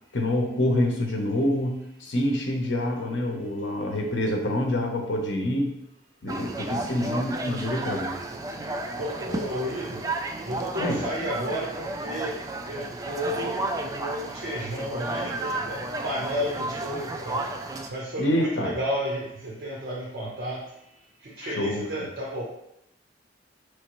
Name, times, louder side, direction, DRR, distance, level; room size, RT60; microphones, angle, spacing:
voice 1, 0.1-5.8 6.2-8.2 10.8-11.0 18.2-18.8 21.4-21.9, left 1 dB, 80° left, 2 dB, 0.8 m, -26 dB
sound 1, 6.3-17.9, right 2 dB, 20° right, 0.3 m, -33 dB
voice 2, 9.0-10.1 10.5-12.4 12.7-17.5 17.9-20.6 21.2-22.4, equal, 55° right, -4 dB, 0.9 m, -32 dB
4.9 x 3.2 x 3.0 m, 0.80 s
head